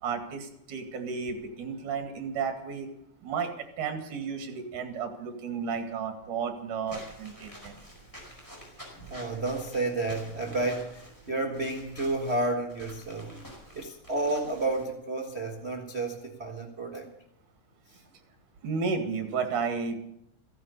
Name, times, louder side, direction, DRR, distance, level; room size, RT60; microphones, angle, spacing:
voice 1, 0.0-2.9 3.2-7.8 18.6-19.9, right 5 dB, 70° right, 6 dB, 3.5 m, -33 dB
Walk footsteps / Squeak, 6.9-14.8, right 1 dB, 5° left, 4.7 m, -48 dB
voice 2, 9.1-13.5 13.7-17.1, right 2 dB, 50° right, 1 dB, 0.7 m, -31 dB
16.0 x 11.0 x 8.1 m, 0.79 s
omnidirectional pair, 3.9 m